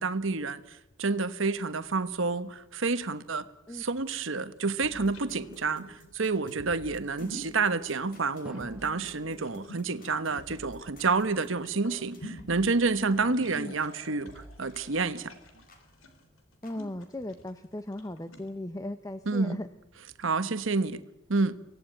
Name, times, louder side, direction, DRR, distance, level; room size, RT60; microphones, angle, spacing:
voice 1, 0.0-3.5 3.7-15.3 19.3-19.6 20.2-21.0 21.3-21.6, right 4 dB, 65° right, 1.2 m, -29 dB
sound 1, 3.7-18.5, left 1 dB, 75° left, 3.8 m, -50 dB
sound 2, 4.8-14.0 14.3-15.9 16.6-16.7, equal, 45° left, 4.6 m, -52 dB
Drum, 8.4-11.3, right 1 dB, 5° right, 1.5 m, -50 dB
voice 2, 13.3-13.7 16.6-19.7, left 1 dB, 15° left, 0.8 m, -38 dB
24.5 x 17.0 x 9.2 m
head